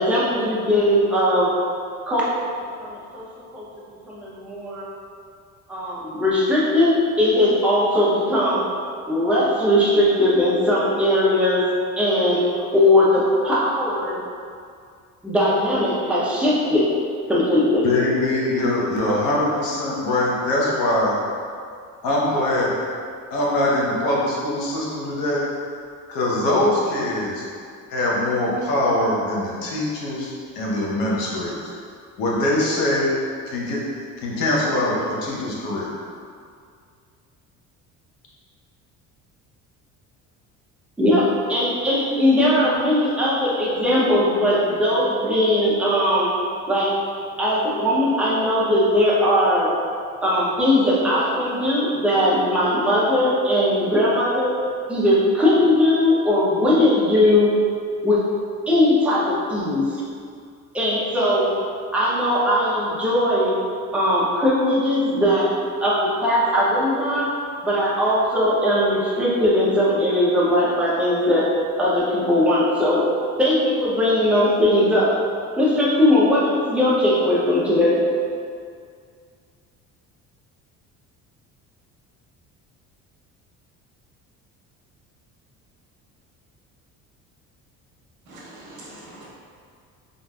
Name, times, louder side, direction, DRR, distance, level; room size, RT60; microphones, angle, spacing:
voice 1, 0.0-1.5 2.1-2.3 2.8-3.2 3.5-3.6 4.1-4.9 5.7-8.6 9.0-11.6 12.0-12.4 12.7-14.2 15.2-16.9 17.3-17.8 41.0-46.3 46.7-46.9 47.4-49.7 50.2-54.5 54.9-57.5 58.0-58.2 58.7-59.8 60.7-61.5 61.9-63.6 63.9-65.5 65.8-67.3 67.6-71.4 71.8-73.0 73.4-75.1 75.6-77.9, left 1 dB, 5° right, -8 dB, 0.5 m, -19 dB
voice 2, 17.8-21.1 22.0-22.7 23.3-25.5 26.1-27.4 27.9-31.6 32.2-33.1 33.5-33.8 34.2-35.9, left 1 dB, 90° left, -4 dB, 0.8 m, -22 dB
voice 3, 88.3-89.3, right 1 dB, 65° right, -5 dB, 0.9 m, -42 dB
3.5 x 2.5 x 2.3 m, 2.2 s
cardioid pair, 140°, 33 cm